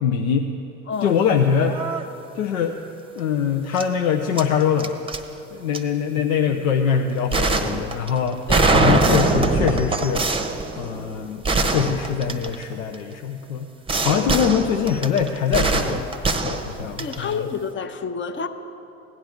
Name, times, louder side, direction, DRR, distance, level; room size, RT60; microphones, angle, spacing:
voice 1, 0.0-0.5 1.0-1.8 2.3-2.8 3.2-5.0 5.5-8.4 8.7-10.3 10.8-13.7 14.0-16.0 16.4-17.4, left 7 dB, 80° left, 5 dB, 0.6 m, -23 dB
voice 2, 0.9-1.2 8.5-8.8 17.0-18.5, left 5 dB, 30° left, 9 dB, 0.7 m, -29 dB
sound 1, 1.1-1.3 1.6-2.0 3.8-3.9 4.4-5.2 5.7-5.8 7.3-12.9 13.9-17.3, right 3 dB, 15° right, 0.8 m, -22 dB
16.5 x 10.0 x 3.5 m, 2.8 s
hypercardioid pair, 70°, 40 cm